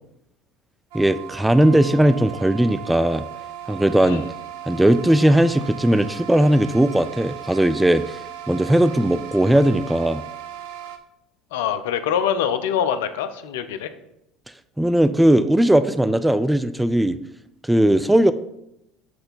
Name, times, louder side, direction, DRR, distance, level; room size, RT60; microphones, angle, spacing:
voice 1, 0.9-3.2 3.7-4.2 4.7-8.2 8.5-10.2 14.8-17.2 17.6-18.3, right 1 dB, 5° right, 12 dB, 0.4 m, -18 dB
sound 1, 0.9-11.0, right 11 dB, 70° right, 0.7 m, -37 dB
voice 2, 11.5-13.9, left 8 dB, 75° left, 10 dB, 0.5 m, -24 dB
7.7 x 3.3 x 5.6 m, 0.81 s
hypercardioid pair, 70°, 0 cm